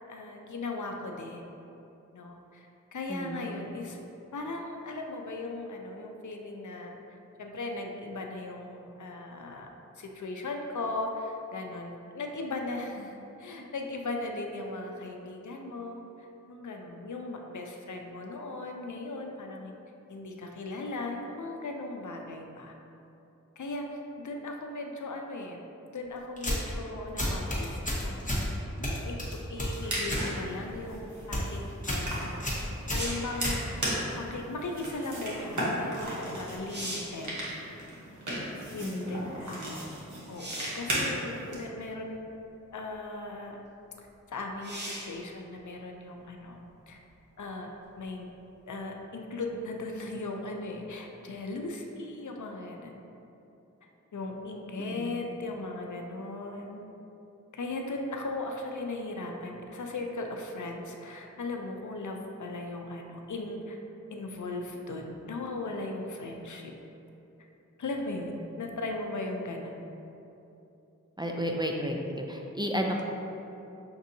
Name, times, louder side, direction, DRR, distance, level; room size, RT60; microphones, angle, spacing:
voice 1, 0.1-1.5 2.1-4.0 4.3-7.0 7.4-9.7 10.0-16.0 16.5-19.7 20.1-22.7 23.6-23.9 24.2-25.6 25.9-28.5 28.8-33.7 34.2-37.4 38.7-39.7 40.3-42.2 42.7-43.6 44.0-47.0 47.4-47.7 48.0-48.3 48.7-53.0 54.1-56.8 57.5-63.8 64.1-66.7 67.8-69.8, left 2 dB, 75° left, 2 dB, 0.5 m, -38 dB
voice 2, 3.1-3.5 38.8-39.7 54.8-55.1 71.2-73.0, equal, 15° right, 0 dB, 0.3 m, -33 dB
sound 1, 26.4-26.8 27.2-28.5 28.8-30.3 30.6-30.9 31.2-31.5 31.8-32.1 32.4-34.0, left 1 dB, 25° left, 0.9 m, -31 dB
sound 2, 29.6-41.5, right 1 dB, 75° right, 1.0 m, -36 dB
sound 3, 32.9-33.4 36.0-36.1 36.5-37.2 40.4-40.9 41.9-42.0 44.6-45.2 48.8-48.9, right 1 dB, 35° right, 0.7 m, -38 dB
6.0 x 2.6 x 2.6 m, 2.9 s
wide cardioid pair, 45°, 30 cm